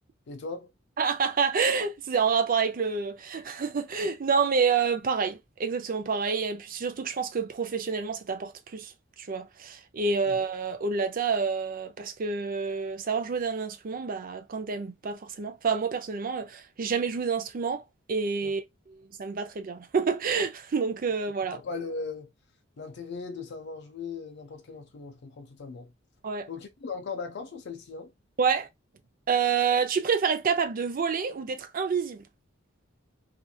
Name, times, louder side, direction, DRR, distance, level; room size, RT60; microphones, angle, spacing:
voice 1, 0.3-0.7 10.3-10.4 18.4-18.5 21.5-22.3 22.8-25.9 26.5-28.1, left 4 dB, 60° left, 0.4 m, -38 dB
voice 2, 1.0-8.9 9.2-17.8 18.1-21.6 26.2-26.5 28.4-28.7 29.3-32.2, right 5 dB, 45° right, 0.5 m, -28 dB
2.7 x 2.5 x 2.3 m
head